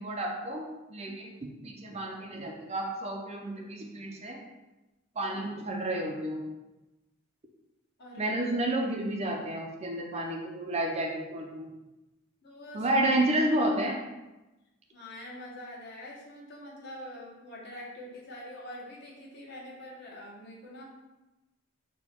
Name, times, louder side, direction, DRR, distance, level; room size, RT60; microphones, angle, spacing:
voice 1, 0.0-4.4 5.2-6.4 8.2-11.7 12.7-14.0, right 1 dB, 30° right, 1 dB, 0.4 m, -31 dB
voice 2, 8.0-8.4 12.4-12.9 14.9-20.8, left 1 dB, 50° left, -3 dB, 0.9 m, -45 dB
4.3 x 2.2 x 4.2 m, 1.0 s
head